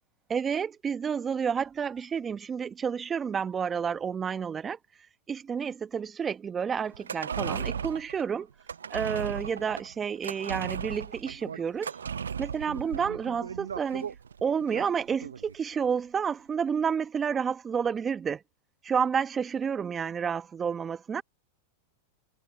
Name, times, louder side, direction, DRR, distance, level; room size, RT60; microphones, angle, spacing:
voice 1, 0.3-4.8 5.3-8.5 8.9-11.9 12.4-14.1 14.4-18.4 18.8-21.2, right 7 dB, 25° right, 0.9 m, -30 dB
sound 1, 6.9-15.5 15.8-15.9, right 7 dB, 90° right, 0.5 m, -36 dB
hypercardioid pair, 110°, 0 cm